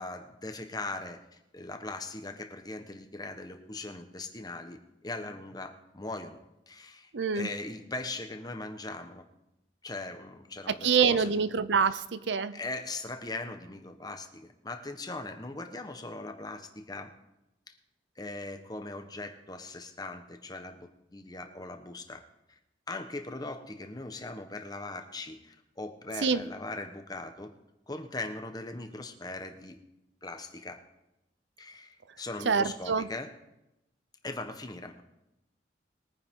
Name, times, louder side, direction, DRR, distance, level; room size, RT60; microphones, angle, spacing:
voice 1, 0.0-6.4 6.7-9.2 9.8-11.3 12.5-17.1 17.7-17.8 18.2-22.2 22.9-27.5 27.9-29.8 30.2-30.8 31.6-33.3 34.2-35.0, left 2 dB, 20° left, 6 dB, 1.2 m, -40 dB
voice 2, 7.1-7.5 10.7-12.6 26.2-26.4 32.4-33.1, right 6 dB, 80° right, 14 dB, 0.6 m, -26 dB
21.5 x 9.7 x 3.7 m, 0.89 s
head